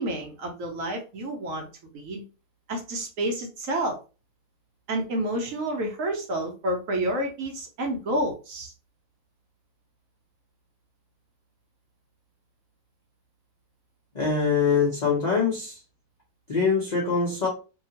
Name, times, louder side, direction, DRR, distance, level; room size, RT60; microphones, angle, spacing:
voice 1, 0.0-1.7 1.9-2.2 2.7-4.0 4.9-8.7, right 1 dB, 65° right, 2 dB, 1.0 m, -29 dB
voice 2, 14.1-15.8 16.5-17.5, left 5 dB, 40° left, -3 dB, 0.6 m, -23 dB
2.8 x 2.3 x 2.8 m, 0.33 s
omnidirectional pair, 1.6 m